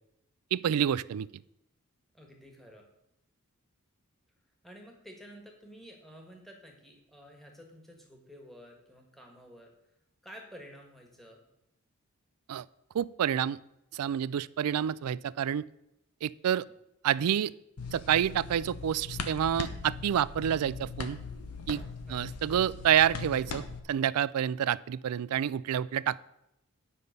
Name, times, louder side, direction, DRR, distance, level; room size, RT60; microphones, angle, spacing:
voice 1, 0.5-1.3 12.5-12.6 12.9-13.6 13.9-15.6 16.2-16.7 17.0-17.5 17.9-21.2 21.7-21.8 22.1-26.2, right 9 dB, 80° right, 20 dB, 0.3 m, -28 dB
voice 2, 2.1-2.8 4.6-9.7 10.2-11.4 22.1-22.2, equal, ahead, 1 dB, 1.6 m, -51 dB
sound 1, 17.8-23.8, left 4 dB, 90° left, 1.0 m, -40 dB
10.0 x 5.4 x 6.6 m, 0.87 s
head